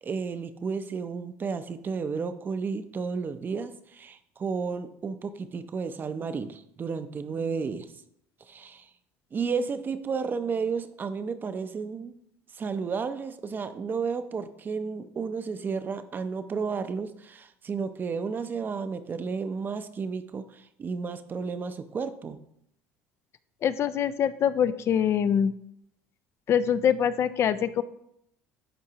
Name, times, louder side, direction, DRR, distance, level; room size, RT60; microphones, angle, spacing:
voice 1, 0.0-7.9 8.5-8.9 9.3-12.1 12.5-22.4, right 5 dB, 30° right, 11 dB, 0.6 m, -32 dB
voice 2, 23.6-25.5 26.5-27.8, left 8 dB, 45° left, 14 dB, 0.4 m, -24 dB
11.0 x 4.4 x 2.9 m, 0.75 s
supercardioid pair, 100°, 6 cm